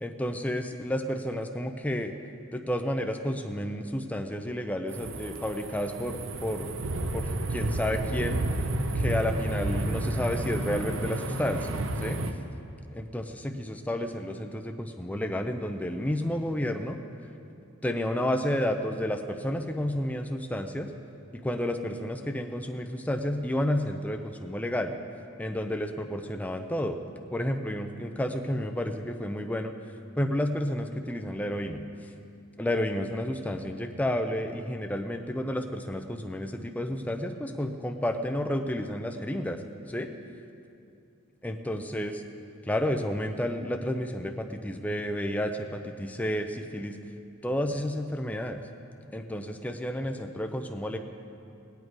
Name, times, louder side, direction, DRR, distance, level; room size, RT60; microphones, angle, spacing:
voice 1, 0.0-2.1 2.5-6.7 7.1-8.4 8.9-12.2 12.9-17.0 17.8-20.9 21.3-24.9 25.4-27.0 27.3-29.7 30.2-31.8 32.6-39.6 39.9-40.1 41.4-42.2 42.7-47.0 47.4-48.6 49.1-51.0, left 1 dB, 5° left, 5 dB, 0.5 m, -31 dB
sound 1, 4.9-12.3, right 2 dB, 65° right, 0.8 m, -31 dB
18.5 x 8.7 x 4.7 m, 2.7 s
head